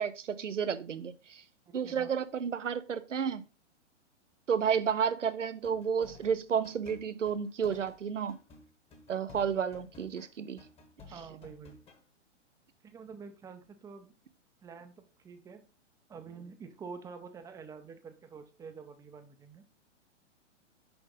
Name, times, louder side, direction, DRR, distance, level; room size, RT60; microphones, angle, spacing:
voice 1, 0.0-1.4 1.7-3.4 4.5-8.4 9.1-10.6, right 7 dB, 85° right, 0.7 m, -31 dB
voice 2, 1.7-2.1 11.1-11.8 12.8-14.1 14.6-15.6 16.1-19.6, right 5 dB, 10° right, 0.5 m, -47 dB
sound 1, 5.6-8.0 8.3-10.3 10.6-12.0, left 3 dB, 15° left, 1.1 m, -54 dB
6.1 x 5.1 x 3.7 m
figure-of-eight pair, 115°, 36 cm